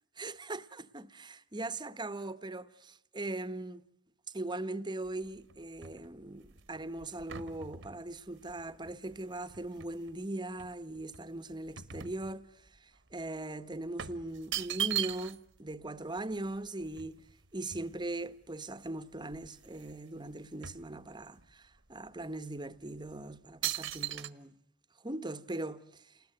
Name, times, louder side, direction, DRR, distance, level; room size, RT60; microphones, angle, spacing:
voice 1, 0.2-3.8 4.3-17.2 17.5-24.6 25.0-26.1, right 2 dB, 20° right, 1.1 m, -40 dB
sound 1, 5.0-10.2 10.6-12.8 13.1-13.3 14.0-15.6 15.9-16.0 16.2-18.3 18.9-19.0 19.2-20.0 20.3-21.5 22.1-22.2 22.8-23.1 23.6-24.3, right 10 dB, 65° right, 1.4 m, -40 dB
30.0 x 20.5 x 7.9 m
head